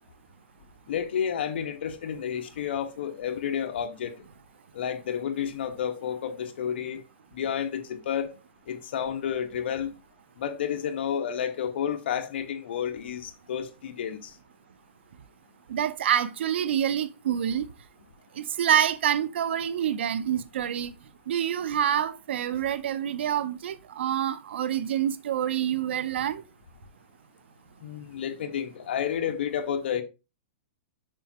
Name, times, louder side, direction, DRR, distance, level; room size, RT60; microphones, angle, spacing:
voice 1, 0.9-4.1 4.7-7.0 7.3-8.3 8.7-9.9 10.4-14.3 27.8-30.0, left 8 dB, 60° left, 1.2 m, -31 dB
voice 2, 15.7-17.7 18.4-20.9 21.3-26.4, right 9 dB, 65° right, 0.7 m, -27 dB
6.9 x 5.8 x 2.8 m
hypercardioid pair, 165°, 6 cm